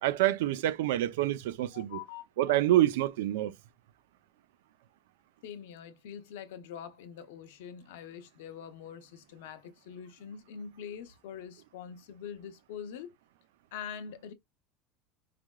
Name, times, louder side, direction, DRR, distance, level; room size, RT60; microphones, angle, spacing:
voice 1, 0.0-2.0 2.4-3.5, right 14 dB, 85° right, 0.4 m, -27 dB
voice 2, 1.7-2.6 5.4-13.1 13.7-14.3, left 8 dB, 85° left, 0.7 m, -44 dB
3.5 x 3.3 x 2.2 m
supercardioid pair, 155°, 0 cm